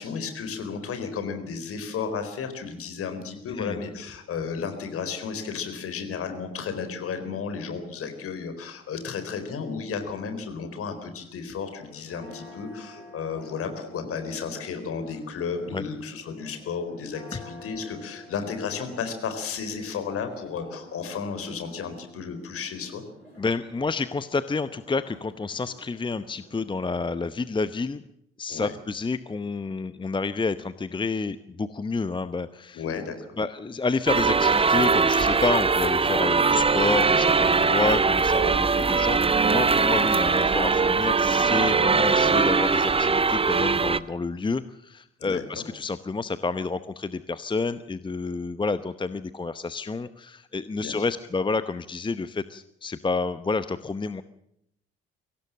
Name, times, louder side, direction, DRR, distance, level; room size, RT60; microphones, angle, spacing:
voice 1, 0.0-23.0 28.5-28.7 32.7-33.2 41.9-42.1 45.2-45.6 50.8-50.9, left 6 dB, 50° left, 8 dB, 4.3 m, -33 dB
voice 2, 3.5-3.8 15.7-15.8 17.3-17.4 23.4-28.0 28.4-32.8 33.4-54.2, left 4 dB, 15° left, 14 dB, 0.9 m, -29 dB
Church bell, 11.7-26.7, left 1 dB, 90° right, 4.1 m, -49 dB
sound 1, 34.1-44.0, right 4 dB, 20° right, 0.9 m, -21 dB
24.0 x 17.5 x 7.5 m, 0.78 s
figure-of-eight pair, 45°, 29 cm